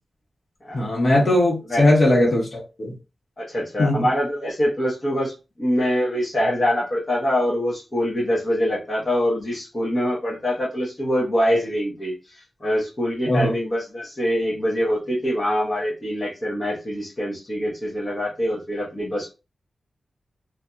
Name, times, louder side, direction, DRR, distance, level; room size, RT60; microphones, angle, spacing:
voice 1, 0.7-2.9 3.8-4.0 13.3-13.5, left 1 dB, 55° left, -3 dB, 1.3 m, -19 dB
voice 2, 3.4-19.3, equal, 35° left, -6 dB, 1.0 m, -24 dB
2.7 x 2.6 x 2.3 m, 0.29 s
wide cardioid pair, 105°, 0 cm